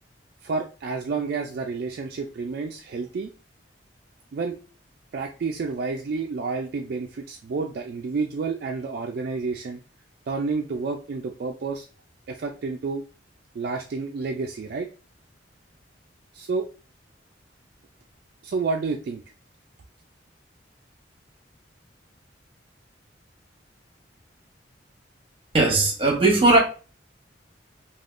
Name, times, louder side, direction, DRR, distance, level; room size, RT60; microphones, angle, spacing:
voice 1, 0.4-3.3 4.3-4.6 5.1-9.8 10.3-11.9 12.3-13.0 13.5-14.9 16.3-16.7 18.4-19.2, right 4 dB, 55° right, 0.3 m, -29 dB
voice 2, 25.5-26.6, right 2 dB, 30° right, 0.9 m, -18 dB
3.4 x 2.3 x 2.4 m
head